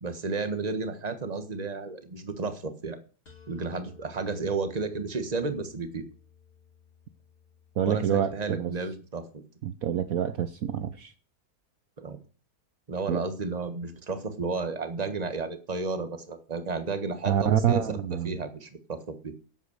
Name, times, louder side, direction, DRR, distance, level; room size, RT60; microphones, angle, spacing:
voice 1, 0.0-3.0 3.5-6.0 7.8-9.3 12.0-12.2 12.9-18.0 18.2-19.3, right 3 dB, 25° right, 1.5 m, -32 dB
sound 1, 3.3-9.1, left 7 dB, 75° left, 3.9 m, -56 dB
voice 2, 7.8-8.7 9.6-11.1 13.1-13.2 17.3-18.3, right 9 dB, 65° right, 1.1 m, -26 dB
11.0 x 8.3 x 6.5 m
omnidirectional pair, 1.7 m